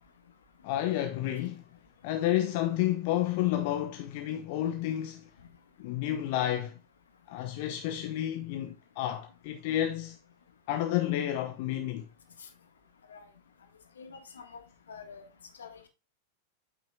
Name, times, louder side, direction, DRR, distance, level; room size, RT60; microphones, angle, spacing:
voice 1, 0.6-1.6 2.0-5.3 5.8-6.8 7.3-10.2 10.7-12.1, left 12 dB, 50° left, 0.9 m, -30 dB
voice 2, 14.0-14.6 14.9-15.3 15.6-15.9, left 5 dB, 70° left, 1.7 m, -47 dB
8.9 x 8.6 x 2.4 m
figure-of-eight pair, 90°, 0 cm